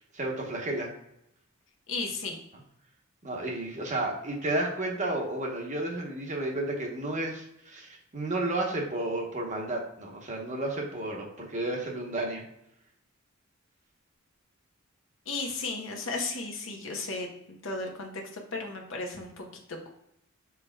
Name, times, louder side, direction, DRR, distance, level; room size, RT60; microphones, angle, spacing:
voice 1, 0.1-0.9 3.2-12.4, right 2 dB, 35° right, 0 dB, 1.0 m, -32 dB
voice 2, 1.9-2.4 15.3-19.9, left 3 dB, 65° left, 1 dB, 1.0 m, -35 dB
4.7 x 4.7 x 2.2 m, 0.77 s
head